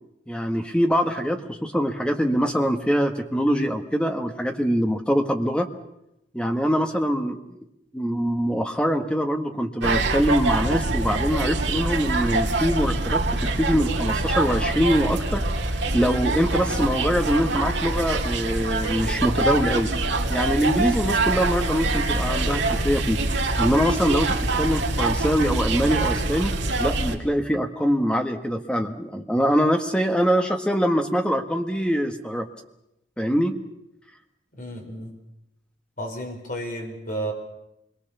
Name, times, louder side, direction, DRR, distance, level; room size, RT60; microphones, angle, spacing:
voice 1, 0.3-5.7 6.3-7.6 7.9-15.5 15.9-19.9 20.3-23.2 23.6-26.5 26.8-32.5 33.2-33.6, equal, 5° left, 5 dB, 1.6 m, -23 dB
sound 1, 9.8-27.1, right 2 dB, 70° right, 2.6 m, -25 dB
voice 2, 34.6-35.2 36.0-37.3, right 1 dB, 45° left, 1 dB, 5.3 m, -32 dB
27.0 x 22.5 x 7.0 m, 0.85 s
head